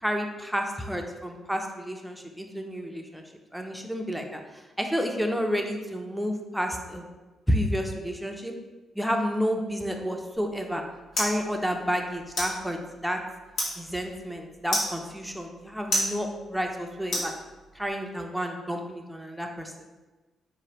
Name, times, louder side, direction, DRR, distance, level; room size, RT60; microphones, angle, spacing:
voice 1, 0.0-3.2 3.5-7.0 7.5-8.6 9.0-10.8 11.2-12.8 13.0-13.2 13.8-17.3 17.7-19.7, equal, 5° right, 3 dB, 0.5 m, -30 dB
sound 1, 10.3-17.9, left 1 dB, 75° left, 1.3 m, -34 dB
4.1 x 3.0 x 2.9 m, 1.2 s
supercardioid pair, 65°, 0 cm